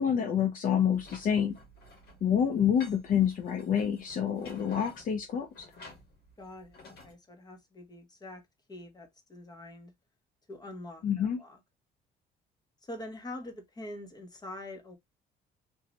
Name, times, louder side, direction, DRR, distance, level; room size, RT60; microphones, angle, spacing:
voice 1, 0.0-1.6 2.2-5.7 11.0-11.4, left 8 dB, 55° left, 0.7 m, -27 dB
sound 1, 0.9-7.1, left 2 dB, 85° left, 2.0 m, -52 dB
voice 2, 6.4-8.4 8.7-9.9 10.5-11.6 12.8-15.0, left 1 dB, 25° left, 1.2 m, -44 dB
3.8 x 2.9 x 2.9 m
cardioid pair, 110°, 17 cm